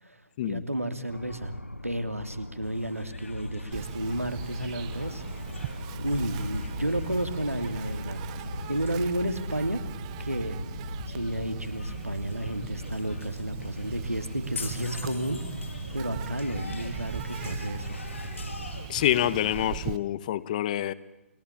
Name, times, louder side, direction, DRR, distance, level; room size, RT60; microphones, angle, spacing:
voice 1, 0.0-1.5 1.8-5.2 6.0-8.2 8.7-9.9 10.2-10.6 11.1-15.7 15.9-18.0, right 1 dB, 85° right, 9 dB, 2.9 m, -32 dB
sound 1, 1.1-18.8, left 1 dB, 85° left, 1.2 m, -38 dB
sound 2, 2.6-19.7, left 4 dB, 65° left, 5.8 m, -46 dB
Insect, 3.7-20.0, right 14 dB, 25° right, 0.9 m, -40 dB
voice 2, 18.9-20.9, left 12 dB, 35° left, 18 dB, 1.2 m, -27 dB
30.0 x 21.5 x 8.6 m, 0.95 s
figure-of-eight pair, 130°, 7 cm